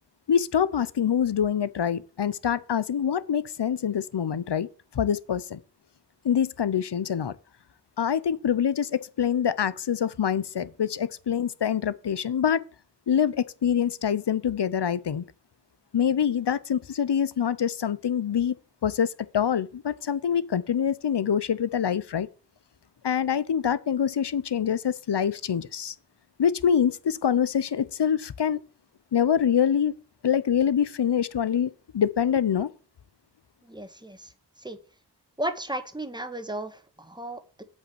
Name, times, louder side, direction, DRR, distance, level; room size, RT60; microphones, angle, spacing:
voice 1, 0.3-4.7 4.9-5.6 6.2-7.4 8.0-12.6 13.1-15.2 15.9-18.6 18.8-22.3 23.0-25.9 26.4-28.6 29.1-29.9 30.2-32.7, left 8 dB, 75° left, 0.7 m, -25 dB
voice 2, 33.7-34.3 34.6-34.8 35.4-37.6, right 1 dB, 10° right, 1.4 m, -34 dB
8.4 x 5.2 x 7.3 m
wide cardioid pair, 65°, 42 cm